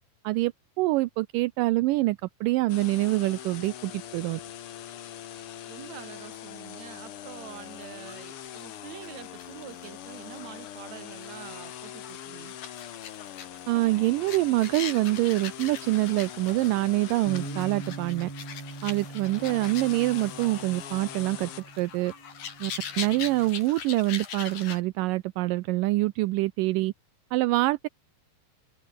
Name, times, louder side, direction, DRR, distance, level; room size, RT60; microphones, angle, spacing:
voice 1, 0.8-4.4 13.7-18.3 18.8-21.5 21.8-22.1 22.6-22.7 23.0-26.9 27.3-27.9, right 19 dB, 80° right, 2.3 m, -25 dB
sound 1, 2.7-21.6, left 11 dB, 65° left, 1.4 m, -43 dB
voice 2, 5.7-12.6, right 11 dB, 60° right, 2.7 m, -45 dB
sound 2, 7.5-24.8, left 8 dB, 85° left, 4.8 m, -42 dB
Bass guitar, 17.3-23.5, right 3 dB, 35° right, 6.4 m, -42 dB
omnidirectional pair, 3.9 m